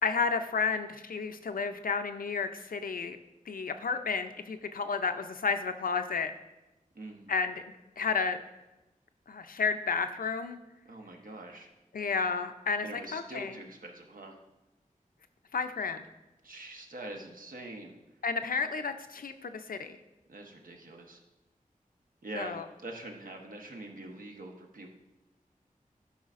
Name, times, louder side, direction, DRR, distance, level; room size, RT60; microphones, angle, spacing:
voice 1, 0.0-3.2 3.5-6.3 7.3-8.4 9.3-10.6 11.9-13.5 15.5-16.0 18.2-20.0 22.3-22.6, left 5 dB, 90° left, 9 dB, 0.5 m, -32 dB
voice 2, 6.9-7.3 10.9-11.7 12.8-14.4 16.4-17.9 20.3-21.2 22.2-24.9, right 2 dB, 80° right, 2 dB, 1.0 m, -44 dB
11.5 x 5.5 x 2.5 m, 1.0 s
wide cardioid pair, 75°, 14 cm